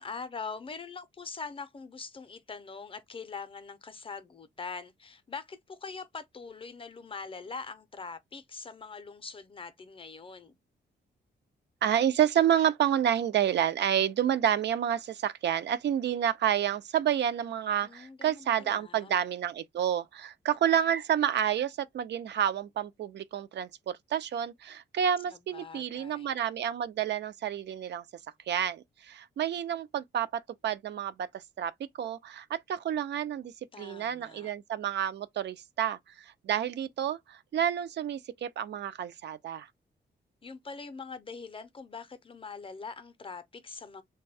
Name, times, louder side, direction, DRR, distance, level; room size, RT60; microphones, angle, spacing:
voice 1, 0.0-10.6 17.8-19.2 25.3-26.4 33.7-34.5 40.4-44.0, left 5 dB, 30° left, 0.5 m, -43 dB
voice 2, 11.8-28.0 28.5-39.7, right 9 dB, 65° right, 0.4 m, -29 dB
3.4 x 2.2 x 3.2 m
wide cardioid pair, 140°, 19 cm